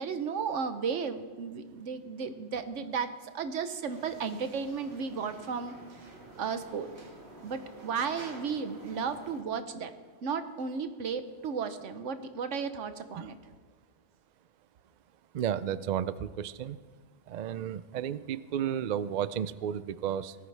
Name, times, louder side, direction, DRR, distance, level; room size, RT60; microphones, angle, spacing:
voice 1, 0.0-5.7 6.4-6.9 7.4-9.9 10.2-13.4, right 6 dB, 70° right, 10 dB, 1.2 m, -34 dB
sound 1, 3.9-9.4, right 2 dB, 55° right, 2.0 m, -50 dB
voice 2, 15.3-16.8 17.3-20.4, right 9 dB, 90° right, 15 dB, 0.4 m, -33 dB
18.0 x 13.5 x 3.4 m, 1.5 s
omnidirectional pair, 1.3 m